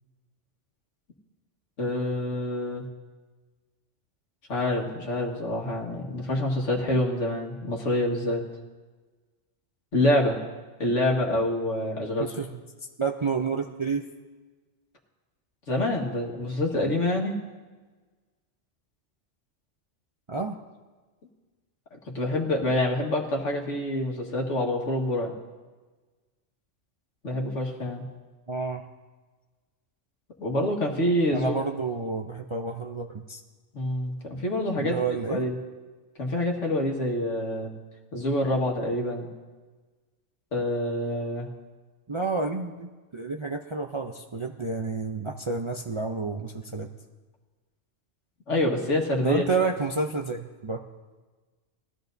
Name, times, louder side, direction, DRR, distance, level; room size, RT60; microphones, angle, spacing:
voice 1, 1.8-2.8 4.5-8.4 9.9-10.4 10.8-12.3 15.7-17.4 21.9-25.3 27.2-28.0 30.4-31.6 33.7-35.0 35.3-35.5 36.2-37.7 38.1-39.3 40.5-41.5 48.5-49.4, left 1 dB, 80° left, 0 dB, 2.0 m, -26 dB
voice 2, 13.0-14.0 20.3-20.6 28.5-28.9 31.3-33.4 34.8-35.4 42.1-46.9 49.2-50.8, right 4 dB, 40° right, 2 dB, 0.4 m, -30 dB
20.0 x 13.5 x 2.7 m, 1.3 s
omnidirectional pair, 1.2 m